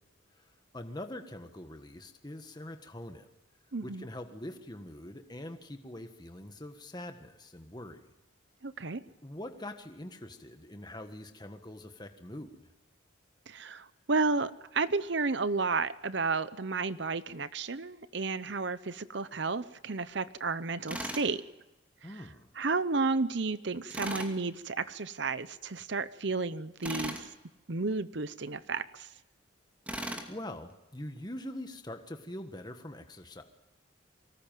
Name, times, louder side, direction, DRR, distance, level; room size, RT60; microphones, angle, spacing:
voice 1, 0.7-3.3 3.8-8.1 9.2-12.6 22.0-22.5 30.3-33.4, left 1 dB, 20° left, 6 dB, 1.5 m, -43 dB
voice 2, 3.7-4.0 8.6-9.0 13.5-21.4 22.1-22.2 22.6-27.3 27.7-29.1, right 3 dB, 60° right, 14 dB, 0.8 m, -32 dB
Tools, 20.9-21.3 23.9-24.3 26.8-27.3 29.9-30.3, right 1 dB, 5° right, 2.4 m, -37 dB
24.5 x 19.5 x 9.3 m, 1.0 s
head